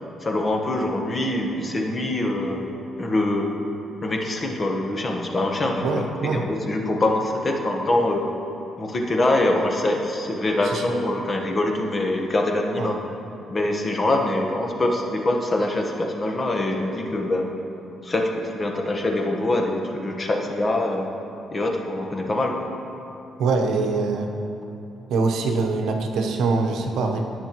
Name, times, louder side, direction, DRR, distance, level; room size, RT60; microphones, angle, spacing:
voice 1, 0.2-2.6 3.0-3.5 4.0-6.0 6.3-8.3 8.8-13.0 13.5-17.5 18.0-21.1 21.5-22.7, left 1 dB, 35° left, 2 dB, 1.2 m, -24 dB
voice 2, 5.8-6.4 10.6-10.8 12.8-12.9 23.4-24.3 25.1-27.3, right 4 dB, 80° right, 3 dB, 1.0 m, -23 dB
17.5 x 6.8 x 3.1 m, 2.9 s
cardioid pair, 90°, 0 cm